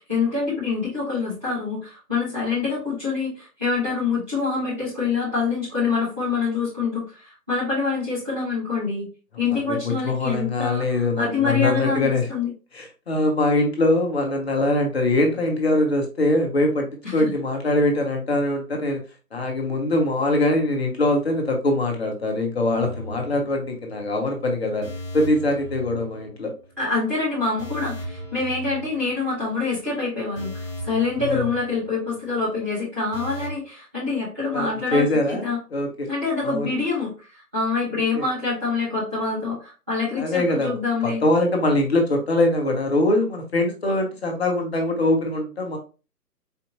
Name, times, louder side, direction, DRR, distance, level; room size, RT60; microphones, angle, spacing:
voice 1, 0.0-9.1 9.4-12.5 17.2-17.3 26.8-35.6 36.1-41.2, left 4 dB, 10° right, -12 dB, 0.7 m, -26 dB
voice 2, 9.5-12.3 12.7-19.0 19.3-24.9 25.1-26.5 31.3-31.4 34.5-36.1 36.4-36.7 38.1-38.2 40.2-40.8 41.0-45.8, left 2 dB, 40° left, 2 dB, 0.9 m, -23 dB
sound 1, 22.7-24.0 24.3-24.4 24.8-26.7 27.0-27.2 27.6-29.5 29.8-29.9 30.4-32.3 32.6-32.7 33.1-33.5, left 1 dB, 20° left, 1.1 m, -37 dB
4.3 x 2.7 x 2.6 m, 0.31 s
figure-of-eight pair, 140°, 48 cm